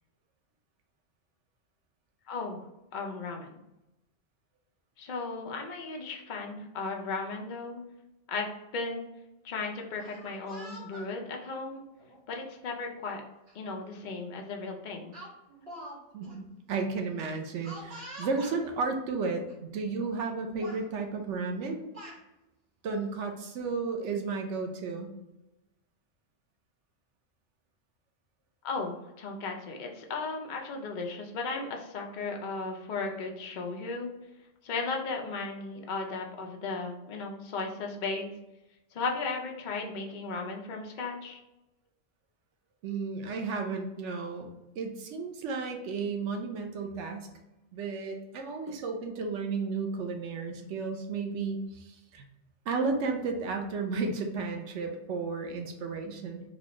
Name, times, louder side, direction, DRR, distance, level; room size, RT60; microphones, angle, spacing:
voice 1, 2.3-2.6 2.9-3.6 5.0-7.8 8.3-9.1 9.4-11.8 12.3-13.2 13.5-15.2 28.6-34.1 34.6-38.3 38.9-41.4, left 3 dB, 50° left, 1 dB, 0.6 m, -35 dB
Speech, 9.9-11.1 12.0-12.2 13.5-13.6 13.9-14.2 15.1-16.0 16.2-16.3 17.6-18.6 19.5-19.6 19.9-20.3 20.6-20.8 21.6-22.2, equal, 60° right, 1.3 m, -45 dB
voice 2, 16.1-21.9 22.8-25.1 42.8-44.5 44.8-47.3 47.7-52.2 52.7-56.4, right 4 dB, 80° right, 4 dB, 0.9 m, -33 dB
4.1 x 2.3 x 3.0 m, 0.95 s
omnidirectional pair, 1.2 m